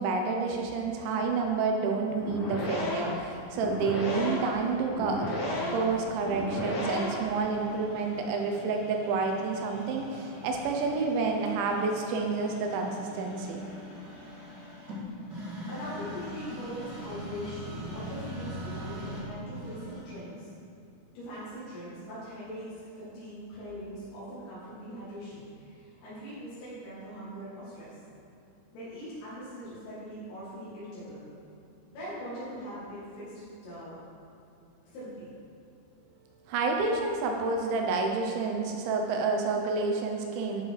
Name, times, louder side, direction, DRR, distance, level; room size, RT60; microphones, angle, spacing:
voice 1, 0.0-5.3 5.7-13.6 36.5-40.6, right 4 dB, 80° right, 2 dB, 2.9 m, -29 dB
sound 1, 2.1-7.4, left 1 dB, 65° left, 4.1 m, -33 dB
sound 2, 5.3-20.3, equal, 35° right, 1.7 m, -43 dB
voice 2, 15.7-20.5 21.1-28.0 28.7-31.2 31.9-34.0 34.8-35.3, equal, 85° left, -11 dB, 4.9 m, -41 dB
11.5 x 6.5 x 4.7 m, 2.8 s
omnidirectional pair, 5.6 m